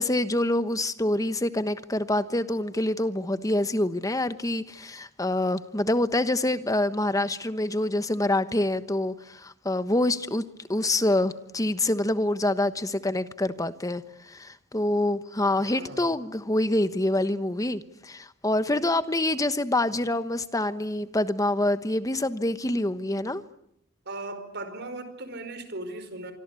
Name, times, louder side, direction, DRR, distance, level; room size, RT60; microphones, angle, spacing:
voice 1, 0.0-10.4 10.7-23.4, left 1 dB, 15° left, 12 dB, 1.2 m, -26 dB
voice 2, 15.6-16.1 24.0-26.3, right 2 dB, 55° right, 10 dB, 4.9 m, -38 dB
26.0 x 25.0 x 8.4 m, 0.72 s
head